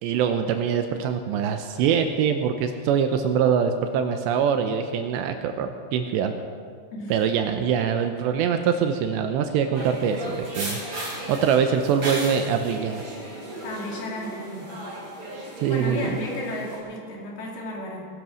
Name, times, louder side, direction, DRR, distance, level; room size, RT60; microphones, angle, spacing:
voice 1, 0.0-6.4 7.1-10.8 11.3-13.0 15.6-16.2, right 7 dB, 80° right, 7 dB, 2.8 m, -23 dB
sound 1, 9.7-16.8, right 1 dB, 25° right, 4.0 m, -35 dB
voice 2, 13.6-14.7 15.7-18.1, left 1 dB, 60° left, -2 dB, 4.3 m, -33 dB
20.0 x 10.5 x 6.3 m, 2.1 s
omnidirectional pair, 5.4 m